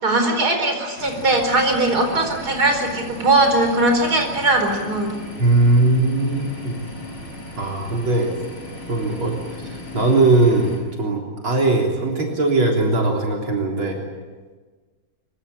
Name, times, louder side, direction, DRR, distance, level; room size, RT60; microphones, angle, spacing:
voice 1, 0.0-5.1, right 2 dB, 45° right, 4 dB, 5.0 m, -19 dB
sound 1, 1.0-10.8, left 2 dB, 90° left, 7.7 m, -36 dB
voice 2, 5.4-6.8 7.6-8.3 8.9-9.4 9.9-14.0, right 2 dB, 75° right, -1 dB, 4.4 m, -19 dB
25.0 x 23.5 x 8.5 m, 1.4 s
omnidirectional pair, 2.3 m